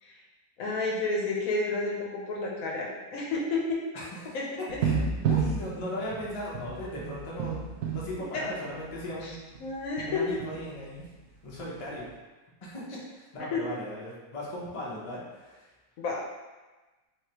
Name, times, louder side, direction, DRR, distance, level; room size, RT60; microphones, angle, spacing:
voice 1, 0.6-3.8 4.3-4.8 9.2-9.3 9.6-10.2 13.5-13.6 16.0-16.2, left 3 dB, 70° left, -2 dB, 1.0 m, -31 dB
voice 2, 3.9-5.0 5.3-7.6 7.9-9.4 10.0-11.1 11.4-12.1 12.6-15.7, left 1 dB, 30° left, -6 dB, 0.6 m, -38 dB
sound 1, 4.7-9.3 9.5-9.7 10.0-10.6 12.1-12.2, right 5 dB, 70° right, 0.8 m, -31 dB
3.4 x 3.3 x 2.9 m, 1.2 s
omnidirectional pair, 1.5 m